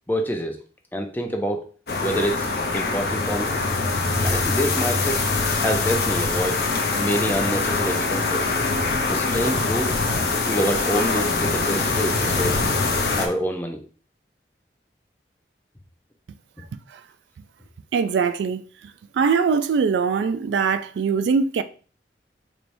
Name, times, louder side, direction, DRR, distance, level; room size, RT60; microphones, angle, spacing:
voice 1, 0.1-0.6 0.9-1.6 2.0-2.5 2.7-3.5 4.2-5.2 5.6-6.6 7.0-8.5 9.1-10.0 10.5-12.6 13.2-13.8, equal, 10° left, 0.5 m, -26 dB
sound 1, 1.9-13.3, left 3 dB, 60° left, 0.6 m, -23 dB
voice 2, 17.9-18.6 19.1-21.6, right 5 dB, 80° right, 0.3 m, -22 dB
4.3 x 3.3 x 2.6 m
head